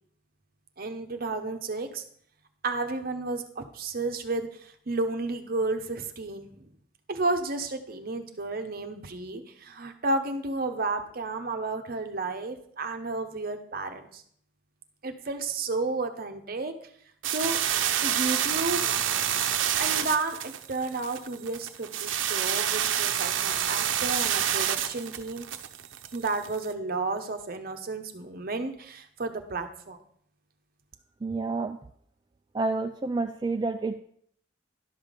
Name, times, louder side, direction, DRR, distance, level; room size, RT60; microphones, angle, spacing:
voice 1, 0.8-2.0 2.6-6.6 7.1-14.2 15.0-16.7 17.3-17.6 18.0-18.8 19.8-25.5 26.1-30.0, right 3 dB, 50° right, 7 dB, 0.9 m, -32 dB
sound 1, 17.2-26.7, right 10 dB, 80° right, 0.7 m, -28 dB
voice 2, 31.2-31.8 32.5-34.0, right 3 dB, 25° right, 5 dB, 0.3 m, -29 dB
11.0 x 5.8 x 5.1 m, 0.64 s
head